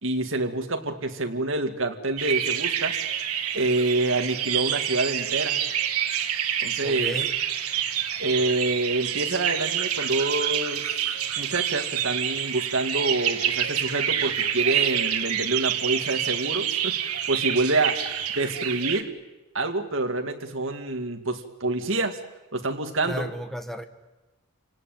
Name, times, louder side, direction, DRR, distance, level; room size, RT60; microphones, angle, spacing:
voice 1, 0.0-2.9 3.5-5.6 6.6-7.1 8.2-10.9 11.4-18.0 18.3-19.1 19.5-22.2 22.5-23.2, right 2 dB, 60° right, 2.2 m, -27 dB
sound 1, 2.2-19.0, right 9 dB, 90° right, 1.6 m, -27 dB
voice 2, 6.8-7.4 23.0-23.8, equal, ahead, 1.3 m, -33 dB
28.5 x 18.5 x 9.2 m
head